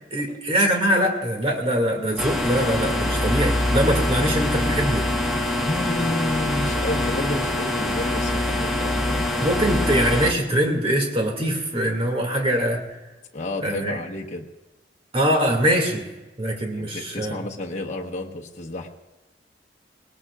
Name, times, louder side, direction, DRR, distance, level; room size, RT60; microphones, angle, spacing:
voice 1, 0.1-5.1 9.4-12.8 13.6-14.0 15.1-16.1 16.4-17.4, equal, 30° right, 2 dB, 2.3 m, -23 dB
sound 1, 2.2-10.3, left 1 dB, ahead, 1.4 m, -24 dB
sound 2, 3.0-7.3, left 3 dB, 60° right, 6.0 m, -40 dB
voice 2, 5.6-9.6 13.3-14.4 16.7-18.9, left 1 dB, 40° left, -2 dB, 1.2 m, -31 dB
20.0 x 18.5 x 2.4 m, 1.1 s
head